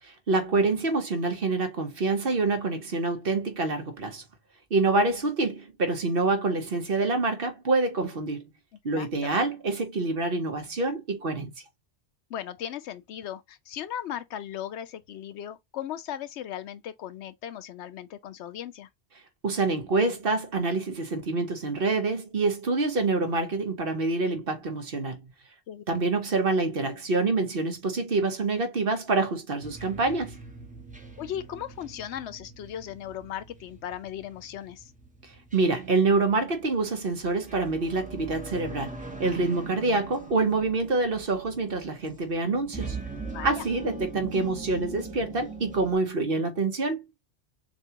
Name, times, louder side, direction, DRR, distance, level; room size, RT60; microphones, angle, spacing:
voice 1, 0.3-4.2 4.7-8.4 8.8-11.5 19.4-25.2 25.9-30.4 35.5-43.0 43.4-47.0, right 3 dB, 55° right, 1.2 m, -26 dB
voice 2, 8.9-9.4 12.3-18.9 25.7-25.8 31.2-34.9 39.6-39.8 43.3-43.6, left 10 dB, 75° left, 0.9 m, -37 dB
sound 1, 29.6-45.9, right 3 dB, 5° right, 0.9 m, -42 dB
6.6 x 2.3 x 2.8 m
omnidirectional pair, 1.2 m